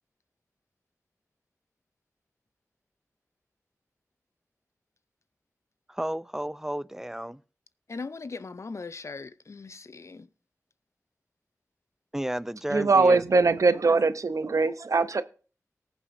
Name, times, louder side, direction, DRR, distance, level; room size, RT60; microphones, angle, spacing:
voice 1, 5.9-7.4 12.1-13.2, right 1 dB, 5° right, 0.4 m, -32 dB
voice 2, 7.9-10.3, left 4 dB, 55° left, 0.5 m, -39 dB
voice 3, 12.7-15.2, right 3 dB, 70° right, 0.6 m, -22 dB
19.0 x 7.1 x 2.6 m
wide cardioid pair, 55°, 6 cm